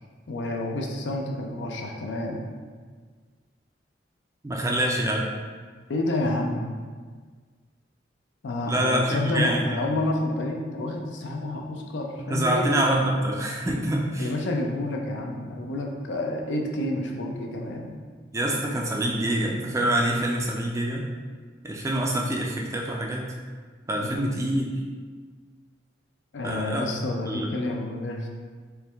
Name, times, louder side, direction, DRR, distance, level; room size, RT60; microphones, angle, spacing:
voice 1, 0.3-2.4 5.9-6.7 8.4-12.7 14.2-18.0 24.0-24.3 26.3-28.3, left 1 dB, 75° left, 1 dB, 0.5 m, -29 dB
voice 2, 4.4-5.3 8.7-9.8 12.2-14.3 18.3-21.1 21.6-23.3 23.9-24.7 26.4-26.9 27.3-27.5, right 1 dB, 15° right, -1 dB, 0.3 m, -26 dB
4.5 x 2.2 x 3.3 m, 1.5 s
head